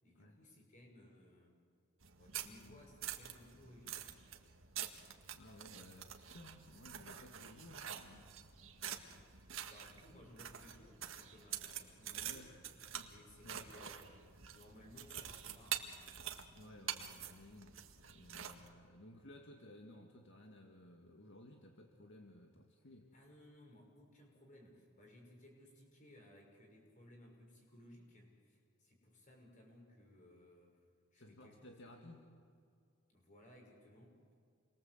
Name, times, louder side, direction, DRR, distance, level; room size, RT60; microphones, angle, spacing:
voice 1, 0.0-1.6 2.2-4.2 9.7-12.5 13.0-14.2 14.5-16.0 23.1-30.8 31.1-32.2 33.1-34.2, left 1 dB, 40° left, 1 dB, 6.6 m, -61 dB
sound 1, 2.0-18.7, right 9 dB, 70° right, 1.9 m, -47 dB
voice 2, 2.4-2.8 5.3-8.4 10.1-10.2 12.1-12.6 12.9-13.7 14.5-14.6 16.5-17.8 18.1-23.1 31.1-32.3, left 1 dB, 60° left, 2 dB, 2.0 m, -57 dB
29.0 x 23.0 x 8.0 m, 2.4 s
head